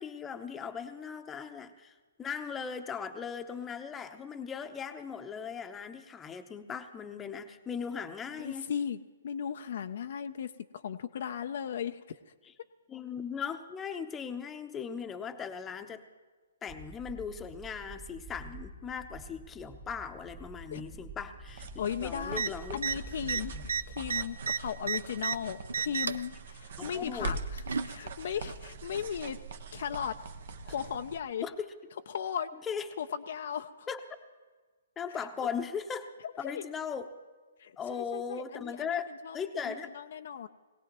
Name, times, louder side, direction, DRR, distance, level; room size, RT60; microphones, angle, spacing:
voice 1, 0.0-8.7 12.9-16.1 16.6-21.7 22.0-22.8 23.5-23.7 26.8-27.4 28.3-28.4 31.4-31.8 32.6-32.9 33.9-34.0 35.0-36.1 36.4-37.1 37.8-39.9, left 6 dB, 15° left, 8 dB, 0.8 m, -38 dB
voice 2, 8.4-12.2 20.7-20.8 21.8-29.4 29.7-30.1 30.7-31.5 32.1-32.5 33.0-33.9 36.4-36.6 37.6-40.5, left 8 dB, 55° left, 8 dB, 0.5 m, -37 dB
sound 1, 16.7-24.2, right 2 dB, 40° right, 1.7 m, -47 dB
sound 2, 21.5-31.2, right 3 dB, 60° right, 1.0 m, -43 dB
sound 3, 22.3-22.5 22.8-23.0 23.2-25.4 25.7-26.3 27.2-27.9 29.0-29.1, right 5 dB, 75° right, 0.5 m, -32 dB
21.5 x 17.5 x 3.0 m, 1.4 s
figure-of-eight pair, 130°, 0 cm